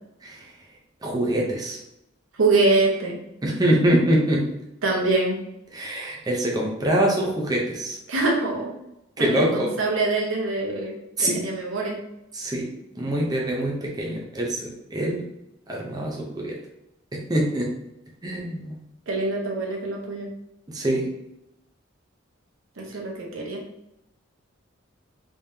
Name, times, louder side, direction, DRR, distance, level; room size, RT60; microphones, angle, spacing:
voice 1, 0.2-0.5 1.0-1.8 3.4-4.5 5.7-8.0 9.2-9.7 11.2-11.4 12.3-12.7 12.9-15.2 15.7-16.6 17.1-17.7 18.2-18.8 20.7-21.1, right 1 dB, 20° right, -2 dB, 0.6 m, -24 dB
voice 2, 2.4-3.2 4.8-5.4 8.1-8.7 9.2-10.9 11.2-12.0 19.1-20.3 22.8-23.6, right 3 dB, 90° right, -1 dB, 1.0 m, -24 dB
3.5 x 3.3 x 2.8 m, 0.84 s
head